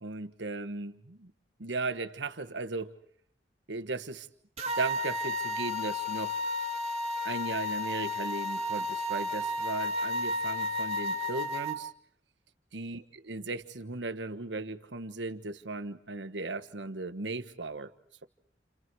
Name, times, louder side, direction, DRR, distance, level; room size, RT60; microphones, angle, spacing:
voice 1, 0.0-1.3 1.6-2.9 3.7-4.3 4.8-6.4 7.2-11.9 12.7-13.0 13.3-17.9, right 3 dB, 90° right, 10 dB, 1.3 m, -36 dB
sound 1, 4.6-11.8, left 2 dB, 40° right, 2.0 m, -32 dB
29.5 x 29.5 x 4.7 m, 0.63 s
head